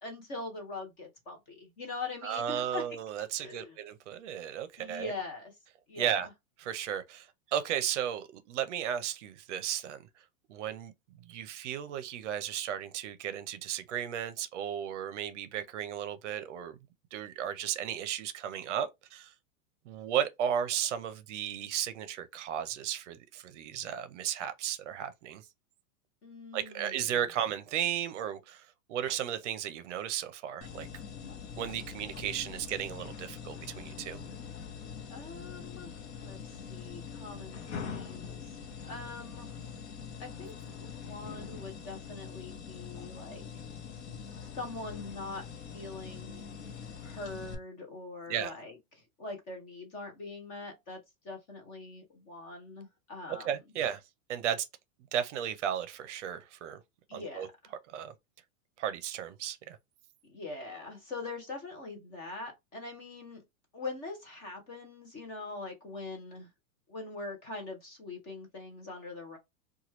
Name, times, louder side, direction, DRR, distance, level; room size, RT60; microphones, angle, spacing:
voice 1, 0.0-2.8 3.4-3.8 4.8-5.5 5.9-6.2 26.2-27.0 35.1-39.6 40.2-40.5 40.8-43.5 44.5-45.4 45.7-46.6 47.0-51.0 51.2-53.5 57.1-57.4 60.2-63.4 63.7-66.5 66.9-69.4, left 3 dB, 20° left, 0.5 m, -42 dB
voice 2, 2.2-5.1 6.0-6.3 6.6-10.1 10.5-10.9 11.2-16.8 17.1-19.3 19.9-25.4 26.5-30.9 31.6-34.2 48.3-48.5 53.3-54.0 54.3-54.7 55.1-56.8 57.1-57.5 57.9-58.1 58.8-59.8, right 9 dB, 55° right, 0.6 m, -34 dB
sound 1, 30.6-47.5, left 6 dB, 50° left, 0.8 m, -43 dB
2.9 x 2.3 x 2.9 m
supercardioid pair, 160°, 43 cm